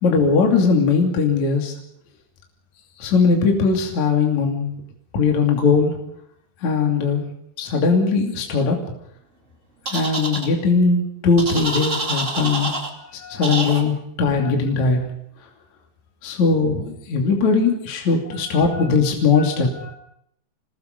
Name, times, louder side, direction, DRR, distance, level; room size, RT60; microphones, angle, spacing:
voice 1, 0.0-1.7 3.0-4.7 5.1-5.9 6.6-7.3 7.6-8.8 9.9-12.7 13.3-15.0 16.2-19.7, left 4 dB, 45° left, 1 dB, 3.8 m, -19 dB
sound 1, 9.9-10.5 11.4-12.9 13.4-13.8, right 2 dB, 20° right, 2.2 m, -26 dB
voice 2, 13.0-13.7 14.4-14.5 18.3-18.9 19.4-20.0, left 4 dB, 65° left, 1 dB, 6.0 m, -40 dB
28.5 x 20.5 x 5.3 m, 0.71 s
omnidirectional pair, 5.0 m